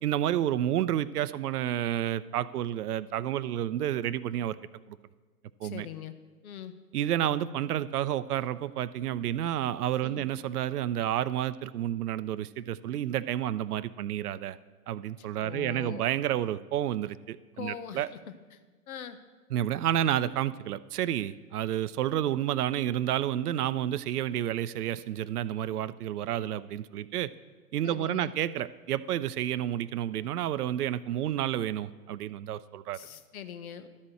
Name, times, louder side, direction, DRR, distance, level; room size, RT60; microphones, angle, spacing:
voice 1, 0.0-4.6 5.6-5.9 6.9-14.6 14.9-18.1 19.5-27.3 27.7-33.0, right 11 dB, 75° right, 15 dB, 0.5 m, -30 dB
voice 2, 5.6-6.1 6.4-6.7 10.0-10.3 15.2-16.0 17.6-18.1 18.5-18.6 18.9-19.2 27.8-28.3 32.9-33.9, left 9 dB, 65° left, 11 dB, 0.9 m, -42 dB
12.0 x 4.2 x 7.6 m, 1.4 s
hypercardioid pair, 140°, 47 cm